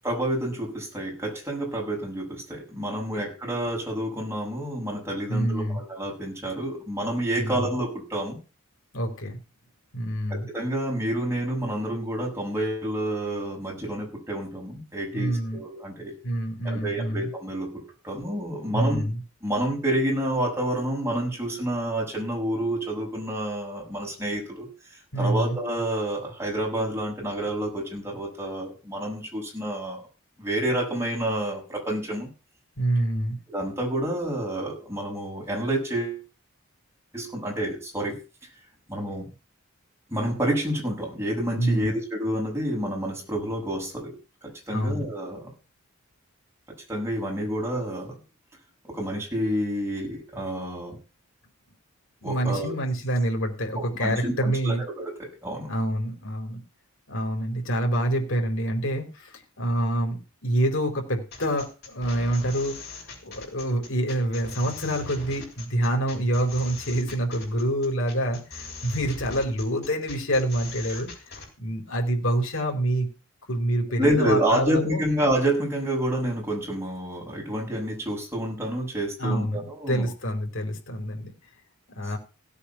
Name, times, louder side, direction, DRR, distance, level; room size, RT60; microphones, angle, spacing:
voice 1, 0.0-8.4 10.3-16.1 16.6-19.0 19.4-24.7 25.2-30.0 30.4-32.3 33.5-36.2 37.1-38.2 38.9-39.3 40.1-44.2 44.4-45.5 46.9-48.2 48.9-51.0 52.2-52.7 53.8-55.7 70.9-71.0 74.0-80.1, right 1 dB, 10° right, -1 dB, 7.4 m, -29 dB
voice 2, 5.3-5.8 7.4-7.7 8.9-9.4 9.9-10.5 15.1-15.6 16.2-17.3 18.7-19.2 25.1-25.6 32.8-33.4 41.6-42.0 44.7-45.1 52.2-54.8 55.7-56.6 57.1-62.8 63.2-71.1 71.6-73.1 73.5-75.0 79.2-81.3 82.0-82.2, right 1 dB, 60° left, 2 dB, 4.5 m, -27 dB
sound 1, 61.3-71.5, left 3 dB, 45° left, 6.2 m, -41 dB
17.0 x 8.5 x 5.9 m, 0.32 s
head